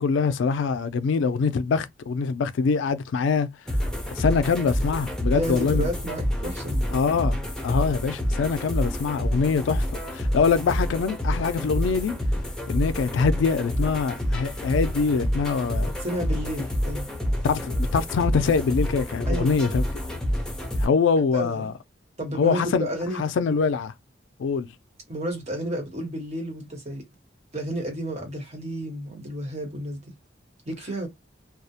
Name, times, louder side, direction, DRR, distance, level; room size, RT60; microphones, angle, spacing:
voice 1, 0.0-3.5 4.2-5.9 6.9-7.4 7.6-12.1 12.7-15.9 17.4-19.8 20.8-21.7 22.4-22.9 23.2-23.9 24.4-24.7, left 5 dB, 80° left, 0.3 m, -24 dB
sound 1, 3.7-20.9, equal, 5° left, 0.6 m, -28 dB
voice 2, 5.3-6.9 15.9-17.1 19.3-19.7 21.3-21.7 22.2-23.2 25.1-27.0 27.5-30.1 30.7-31.1, right 1 dB, 40° right, 1.0 m, -31 dB
2.2 x 2.0 x 2.7 m
head